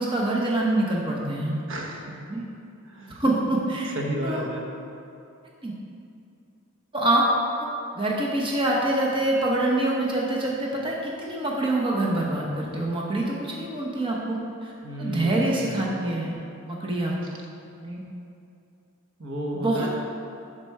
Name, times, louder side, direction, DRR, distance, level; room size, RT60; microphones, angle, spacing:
voice 1, 0.0-1.6 2.3-2.4 3.2-3.9 4.2-4.5 5.6-5.7 6.9-7.3 7.6-7.7 7.9-14.7 15.0-16.4 16.7-17.4 17.8-18.0 19.5-19.9, right 1 dB, 25° right, -3 dB, 0.9 m, -25 dB
voice 2, 1.7-2.4 2.8-3.2 3.9-4.7 14.8-15.8 17.2-17.3 19.2-19.9, right 1 dB, 60° right, 0 dB, 1.1 m, -32 dB
10.5 x 4.4 x 4.6 m, 2.6 s
head